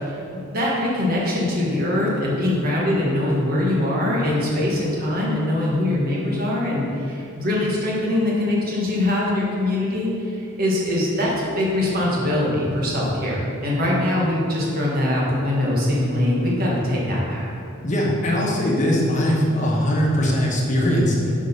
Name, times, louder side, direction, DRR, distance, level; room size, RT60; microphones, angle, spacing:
voice 1, 0.0-17.5, left 1 dB, 45° right, -4 dB, 1.4 m, -22 dB
voice 2, 17.8-21.3, equal, 35° left, -3 dB, 1.3 m, -20 dB
6.2 x 4.9 x 5.5 m, 2.7 s
head